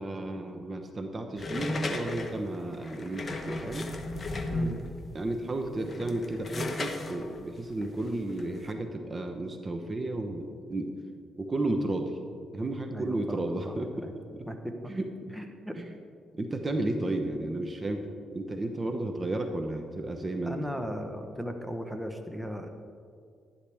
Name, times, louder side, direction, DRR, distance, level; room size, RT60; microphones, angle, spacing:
voice 1, 0.0-3.9 5.1-10.9 11.4-12.2 12.5-14.5 14.9-15.1 15.8-15.9 16.3-18.1 18.3-20.6, right 2 dB, 30° right, 5 dB, 0.9 m, -33 dB
sound 1, 1.4-5.0 5.7-8.7, left 2 dB, 35° left, 1.1 m, -35 dB
voice 2, 4.5-4.9 12.9-14.1 14.5-14.6 14.8-14.9 15.3-15.7 20.5-22.7, equal, 5° right, 5 dB, 1.0 m, -37 dB
11.5 x 11.5 x 3.5 m, 2.2 s
cardioid pair, 90°, 0 cm